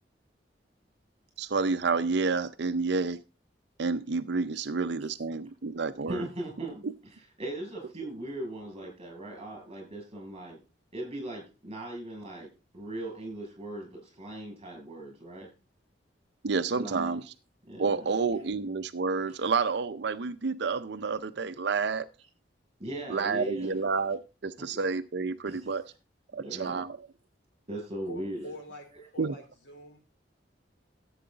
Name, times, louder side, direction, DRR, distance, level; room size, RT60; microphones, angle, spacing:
voice 1, 1.4-3.2 3.8-6.2 6.8-6.9 16.4-17.2 17.8-22.1 23.1-25.8 26.3-27.0 29.2-29.3, right 4 dB, 65° right, 11 dB, 0.6 m, -29 dB
voice 2, 6.1-10.6 10.9-15.5 16.7-17.2 17.7-18.1 19.3-19.4 22.8-23.8 24.6-24.7 25.5-25.7 26.3-26.8 27.7-28.5, right 1 dB, 35° right, 2 dB, 7.3 m, -39 dB
voice 3, 28.1-30.1, equal, 80° left, 4 dB, 3.8 m, -45 dB
14.0 x 8.7 x 3.9 m, 0.31 s
head